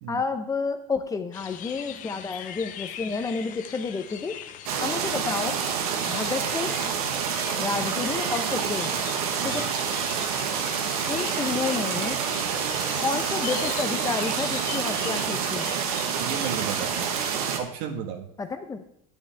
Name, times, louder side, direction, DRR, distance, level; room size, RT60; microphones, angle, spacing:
voice 1, 0.1-4.4 4.8-5.6 6.1-6.8 7.6-9.0 9.4-9.7 11.1-12.2 13.0-15.7 18.4-18.8, left 4 dB, 20° left, 8 dB, 0.7 m, -30 dB
sound 1, 1.3-17.3, left 10 dB, 45° left, 0.8 m, -40 dB
sound 2, 4.7-17.6, right 7 dB, 85° right, 1.2 m, -28 dB
voice 2, 9.4-9.7 16.2-17.0 17.6-18.3, right 7 dB, 65° right, 5 dB, 1.5 m, -33 dB
10.5 x 8.1 x 3.4 m, 0.73 s
supercardioid pair, 120°, 18 cm